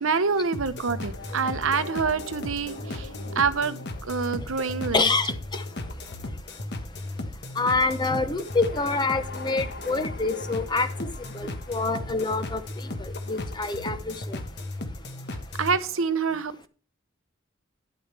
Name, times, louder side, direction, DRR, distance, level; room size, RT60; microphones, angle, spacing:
voice 1, 0.0-3.1 3.3-5.1 15.6-16.7, right 5 dB, 80° right, 0.9 m, -26 dB
sound 1, 0.5-15.8, left 2 dB, 55° left, 1.3 m, -35 dB
voice 2, 4.9-5.6 7.6-10.9 11.3-12.6 13.0-14.4, left 3 dB, 20° left, 0.8 m, -26 dB
11.0 x 8.8 x 3.4 m
head